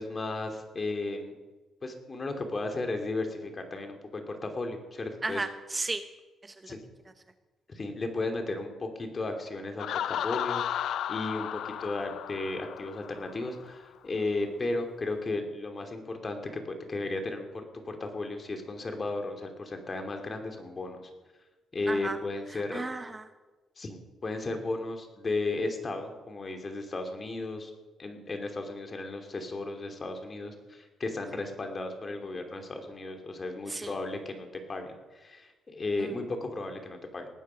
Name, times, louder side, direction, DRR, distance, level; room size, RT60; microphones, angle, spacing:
voice 1, 0.0-1.3 1.8-5.4 6.7-6.8 7.7-21.0 21.7-22.8 23.8-27.7 28.0-37.3, left 2 dB, 35° left, 4 dB, 2.9 m, -35 dB
voice 2, 5.2-6.0 6.4-6.7 21.9-22.2 22.5-23.3 33.7-34.0 36.0-36.1, right 3 dB, 20° right, 9 dB, 0.8 m, -35 dB
Laughter, 9.8-13.5, left 10 dB, 70° left, 0.4 m, -34 dB
19.0 x 9.9 x 5.8 m, 1.3 s
cardioid pair, 90°, 0 cm